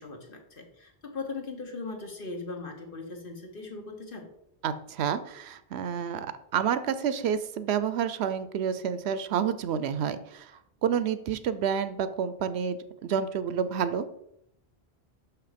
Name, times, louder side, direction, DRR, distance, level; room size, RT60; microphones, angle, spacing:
voice 1, 0.0-4.3, left 3 dB, 55° left, 3 dB, 1.5 m, -39 dB
voice 2, 4.6-10.5 10.8-14.1, right 8 dB, 80° right, 12 dB, 0.9 m, -29 dB
6.2 x 5.9 x 5.0 m, 0.78 s
omnidirectional pair, 1.1 m